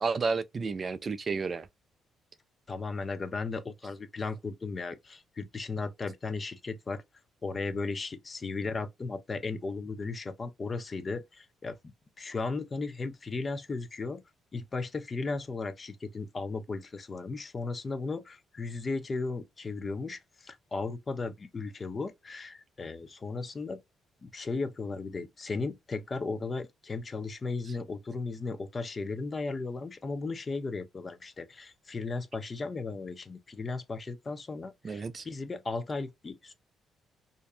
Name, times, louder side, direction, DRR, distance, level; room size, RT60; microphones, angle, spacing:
voice 1, 0.0-1.7 34.8-35.2, right 4 dB, 40° right, 0.3 m, -31 dB
voice 2, 2.7-7.0 7.4-14.2 14.5-23.8 24.2-36.5, left 3 dB, 30° left, 0.5 m, -36 dB
2.6 x 2.2 x 2.4 m
cardioid pair, 90°, 0 cm